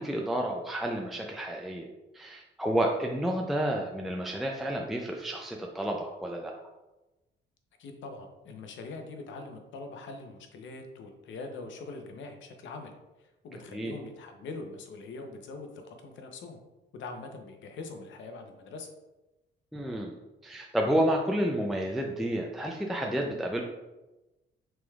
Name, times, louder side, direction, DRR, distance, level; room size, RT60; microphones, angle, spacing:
voice 1, 0.0-1.9 2.1-6.5 13.7-14.0 19.7-23.6, right 1 dB, ahead, 1 dB, 0.4 m, -30 dB
voice 2, 7.8-12.9 13.2-16.6 16.9-18.9, left 3 dB, 70° left, 5 dB, 0.8 m, -43 dB
6.1 x 3.3 x 2.3 m, 1.0 s
cardioid pair, 90°, 20 cm